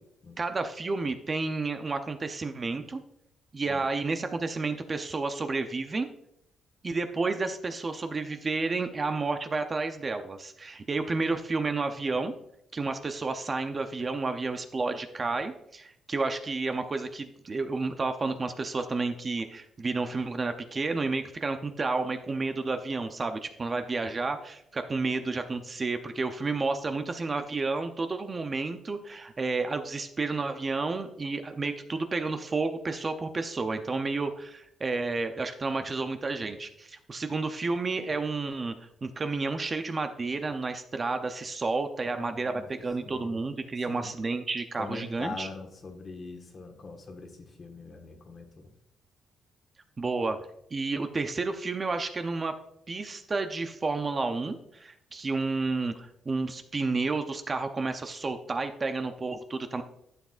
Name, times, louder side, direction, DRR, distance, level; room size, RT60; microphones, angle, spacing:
voice 1, 0.4-3.0 3.5-6.1 6.8-12.3 12.7-38.7 39.0-45.5 50.0-50.4 50.7-52.5 52.9-59.8, right 3 dB, 30° right, 7 dB, 0.6 m, -31 dB
voice 2, 42.0-43.5 43.9-44.1 44.7-48.7, left 3 dB, 40° left, 3 dB, 1.5 m, -43 dB
11.5 x 7.2 x 2.5 m, 0.78 s
cardioid pair, 105°, 0 cm